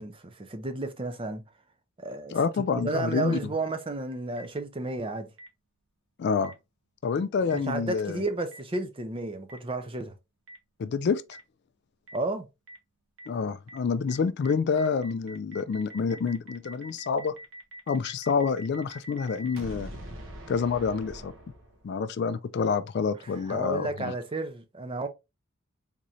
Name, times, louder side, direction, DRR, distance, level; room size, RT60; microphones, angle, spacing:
voice 1, 0.0-1.4 2.0-2.4 2.8-5.3 7.5-10.1 12.1-12.5 23.5-25.1, right 2 dB, 25° right, 0.5 m, -32 dB
voice 2, 2.3-3.4 6.2-6.5 7.0-8.2 10.8-11.2 13.3-17.4 17.9-19.9 20.5-21.3 21.8-24.1, left 5 dB, 50° left, 0.3 m, -27 dB
Boom, 4.4-4.5 5.4-5.5 6.4-6.5 7.5-7.6 8.5-8.6 9.5-9.6 10.5-10.6 11.3-11.4 12.1-12.2 12.7-12.8 13.2-13.3 13.7-13.8 14.1-14.2 14.4-22.0, right 1 dB, 65° right, 0.9 m, -44 dB
3.7 x 3.1 x 2.7 m
head